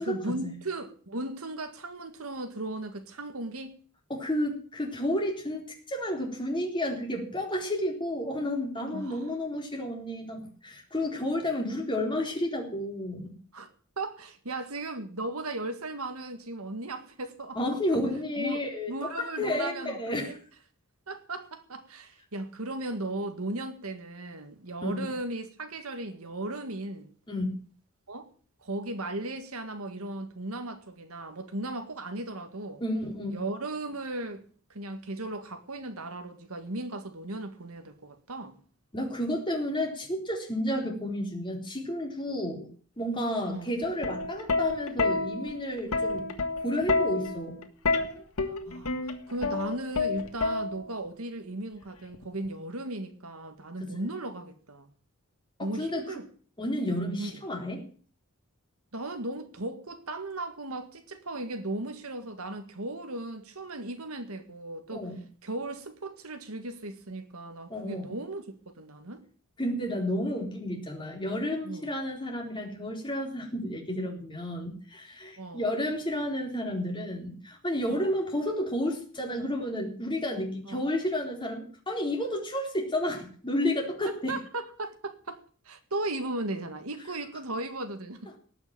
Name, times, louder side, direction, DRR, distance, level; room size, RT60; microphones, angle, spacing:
voice 1, 0.0-3.7 8.9-9.2 13.5-17.8 18.4-18.6 18.9-20.4 21.1-27.1 28.1-28.3 28.6-32.8 33.3-34.4 34.7-38.6 43.5-43.7 48.7-49.0 49.3-54.9 55.6-56.3 57.2-57.4 58.9-65.1 65.4-69.2 71.6-71.9 75.4-75.6 77.9-78.1 80.6-80.8 84.3-85.4 85.7-88.3, right 2 dB, 80° right, 1.9 m, -36 dB
voice 2, 4.1-13.3 17.5-20.4 24.8-25.0 27.3-27.6 32.8-33.4 38.9-42.7 43.0-46.2 46.6-47.6 53.9-54.0 55.6-56.0 56.6-57.8 64.9-65.2 67.7-68.1 69.6-84.4, left 1 dB, 20° left, 3.8 m, -31 dB
Plucked string instrument, 43.8-51.1 52.1-52.5, left 3 dB, 80° left, 1.8 m, -29 dB
18.5 x 6.2 x 8.8 m
head